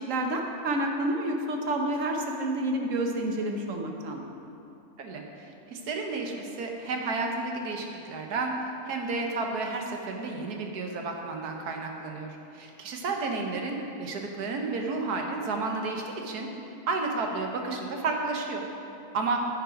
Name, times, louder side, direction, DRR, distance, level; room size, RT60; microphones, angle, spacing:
voice 1, 0.0-4.3, right 1 dB, 60° right, 2 dB, 1.2 m, -29 dB
voice 2, 5.0-16.5 16.9-18.6 19.1-19.4, right 3 dB, 85° right, 2 dB, 1.6 m, -32 dB
10.0 x 7.9 x 5.1 m, 2.8 s
omnidirectional pair, 1.6 m